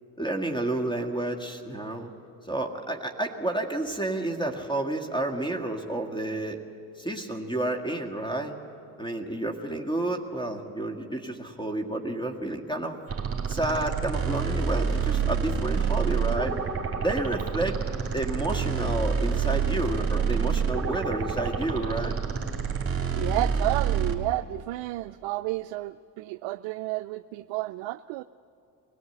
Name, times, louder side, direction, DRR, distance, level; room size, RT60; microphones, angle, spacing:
voice 1, 0.2-2.1 2.5-6.6 7.0-8.5 9.0-13.0 13.5-16.6 17.0-17.8 18.1-22.2, right 2 dB, 10° left, 4 dB, 1.9 m, -30 dB
sound 1, 13.1-24.2, right 6 dB, 30° right, 2.7 m, -28 dB
voice 2, 23.1-28.2, right 19 dB, 70° right, 12 dB, 0.5 m, -31 dB
24.0 x 17.5 x 8.1 m, 2.6 s
hypercardioid pair, 65°, 48 cm